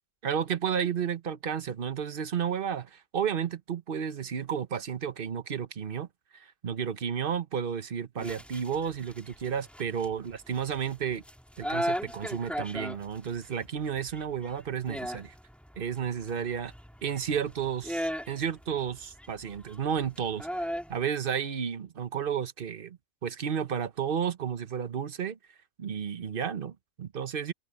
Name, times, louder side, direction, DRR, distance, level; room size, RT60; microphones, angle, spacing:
voice 1, 0.2-6.1 6.3-11.2 11.6-15.3 15.8-16.7 17.0-25.4 25.8-27.5, right 7 dB, 50° right, 1.1 m, -32 dB
sound 1, 8.2-21.0, equal, ahead, 3.2 m, -38 dB
omnidirectional pair, 1.2 m